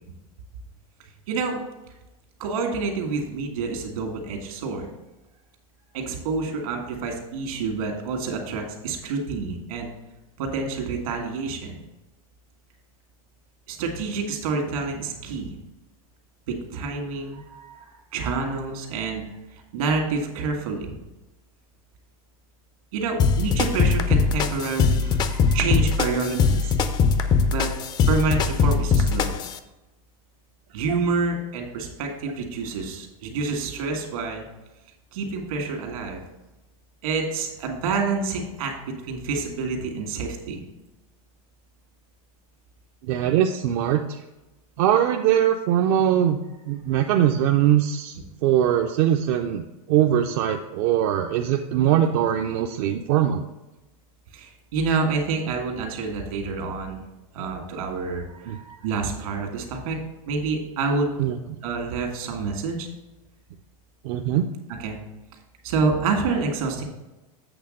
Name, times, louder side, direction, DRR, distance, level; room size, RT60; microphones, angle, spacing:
voice 1, 1.3-1.6 2.4-4.9 5.9-9.9 10.4-11.8 13.7-15.5 16.5-17.8 18.1-19.3 19.7-21.0 22.9-26.8 27.5-27.7 28.1-29.3 30.7-34.5 35.1-36.2 37.0-38.7 39.0-40.6 54.3-57.0 57.3-60.0 60.3-61.1 61.6-62.9 64.8-65.0 65.6-66.8, right 4 dB, 70° right, 3 dB, 1.8 m, -28 dB
sound 1, 23.2-29.6, left 5 dB, 20° left, 0.4 m, -21 dB
voice 2, 43.0-44.2 44.8-46.4 46.7-48.2 48.4-53.5 58.5-58.6 61.2-61.4 64.0-64.5, right 10 dB, 50° right, 4 dB, 0.5 m, -21 dB
8.0 x 3.5 x 6.4 m, 1.0 s
supercardioid pair, 150°, 19 cm